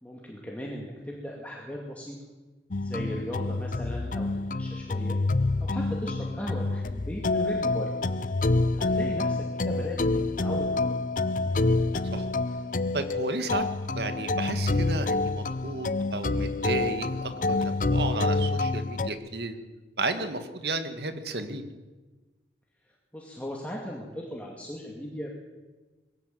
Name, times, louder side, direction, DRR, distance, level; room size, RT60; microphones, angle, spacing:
voice 1, 0.0-2.2 2.8-5.2 5.6-7.9 8.7-11.0 23.1-25.3, equal, 10° left, -2 dB, 2.4 m, -37 dB
sound 1, 2.7-19.1, left 2 dB, 50° left, 0.6 m, -27 dB
voice 2, 12.9-13.7 14.0-19.6 20.0-21.7, right 2 dB, 70° right, 8 dB, 2.0 m, -33 dB
21.5 x 16.0 x 7.9 m, 1.2 s
head